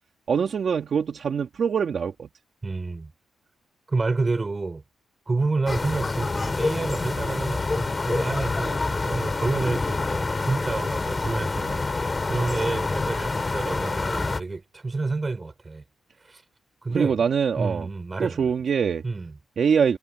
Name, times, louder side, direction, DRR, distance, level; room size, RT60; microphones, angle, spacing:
voice 1, 0.3-2.3 16.9-17.9 18.2-19.0 19.6-20.0, right 6 dB, 55° right, 2.3 m, -23 dB
voice 2, 2.6-3.1 3.9-4.8 5.3-15.8 16.2-16.4 16.8-17.2 17.6-18.5 19.0-19.4, right 3 dB, 25° right, 4.7 m, -29 dB
sound 1, 5.7-14.4, left 3 dB, 25° left, 5.3 m, -27 dB
cardioid pair, 90°, 0 cm